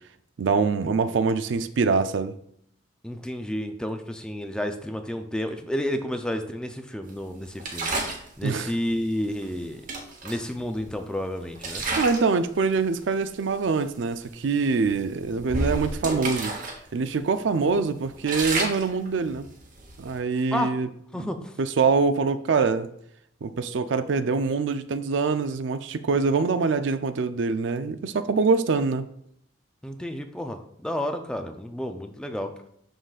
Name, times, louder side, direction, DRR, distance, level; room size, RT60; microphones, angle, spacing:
voice 1, 0.4-2.4 8.4-8.7 12.0-16.6 16.9-19.5 20.0-20.9 21.2-21.3 21.6-22.9 23.4-29.1, right 4 dB, 65° right, 11 dB, 0.4 m, -24 dB
voice 2, 3.0-8.1 8.4-9.9 10.2-11.8 20.5-20.7 21.1-21.6 29.8-32.5, left 1 dB, 5° left, 6 dB, 0.4 m, -31 dB
sound 1, 7.6-8.3 9.4-9.5 9.9-11.1 11.6-12.3 12.7-13.0 13.6-13.7 14.1-14.3 14.8-16.8 17.1-17.2 17.7-20.2, right 2 dB, 40° right, 1.0 m, -31 dB
11.5 x 3.9 x 2.4 m, 0.70 s
head